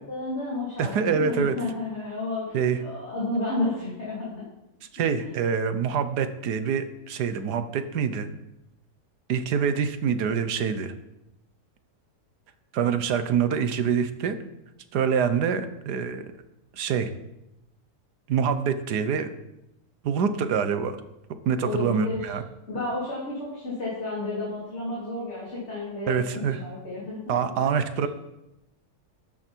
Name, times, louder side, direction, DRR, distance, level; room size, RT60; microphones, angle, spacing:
voice 1, 0.1-4.4 5.2-5.3 21.6-22.3 22.7-27.3, left 2 dB, 45° left, -7 dB, 4.2 m, -31 dB
voice 2, 0.8-1.6 2.5-2.8 4.9-8.3 9.3-10.9 12.7-14.4 14.9-16.3 16.7-17.1 18.3-19.3 20.0-21.0 21.4-22.4 26.1-26.6 27.3-28.1, right 7 dB, 85° right, 10 dB, 1.5 m, -25 dB
13.0 x 10.5 x 4.6 m, 0.89 s
omnidirectional pair, 1.7 m